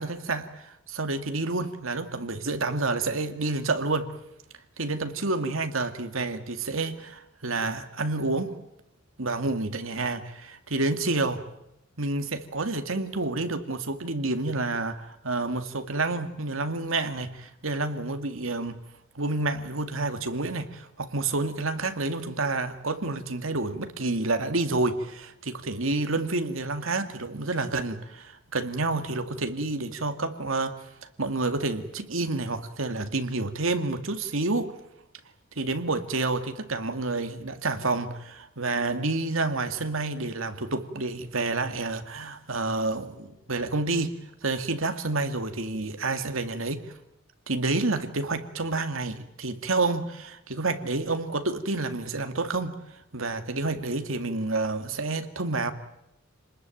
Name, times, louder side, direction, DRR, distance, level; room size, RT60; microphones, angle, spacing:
voice 1, 0.0-4.1 4.8-8.6 9.2-11.4 12.0-18.8 19.2-30.8 31.0-34.7 35.6-44.1 44.4-46.8 47.5-52.8 53.1-55.7, right 3 dB, 75° right, 8 dB, 2.2 m, -29 dB
27.5 x 20.0 x 9.1 m, 0.86 s
head